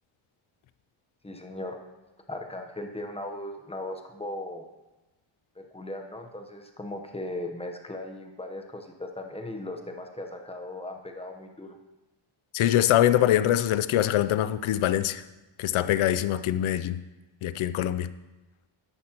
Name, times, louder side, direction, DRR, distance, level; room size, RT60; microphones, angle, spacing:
voice 1, 1.2-1.8 2.3-4.6 5.6-11.8, left 1 dB, 10° left, 4 dB, 0.9 m, -38 dB
voice 2, 12.5-15.2 15.6-17.0 17.4-18.1, left 12 dB, 80° left, 13 dB, 0.6 m, -23 dB
12.5 x 11.0 x 2.9 m, 1.1 s
wide cardioid pair, 175°, 48 cm